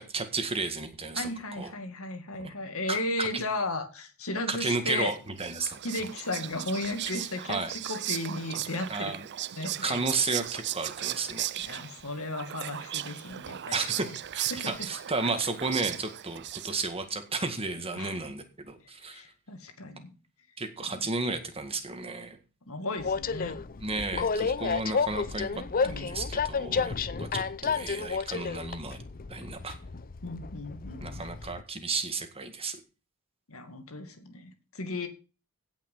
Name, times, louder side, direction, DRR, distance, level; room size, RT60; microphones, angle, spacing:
voice 1, 0.0-1.3 1.6-1.7 2.4-2.5 2.9-3.4 4.5-5.8 7.5-7.7 8.9-9.3 9.8-11.5 13.7-19.2 20.6-22.4 23.8-29.0 29.3-29.8 31.0-32.8, right 3 dB, 25° right, 7 dB, 1.9 m, -33 dB
voice 2, 1.2-5.1 5.8-9.1 9.6-10.0 11.6-14.1 14.5-14.9 18.0-18.2 19.1-20.1 20.8-21.1 22.7-23.6 25.5-26.1 30.2-31.2 33.5-35.1, left 2 dB, 70° left, 7 dB, 2.2 m, -35 dB
Whispering, 5.1-17.0, right 12 dB, 50° right, 0.5 m, -37 dB
Train, 23.0-31.6, left 5 dB, 40° left, 0.6 m, -31 dB
17.0 x 5.8 x 5.6 m, 0.33 s
head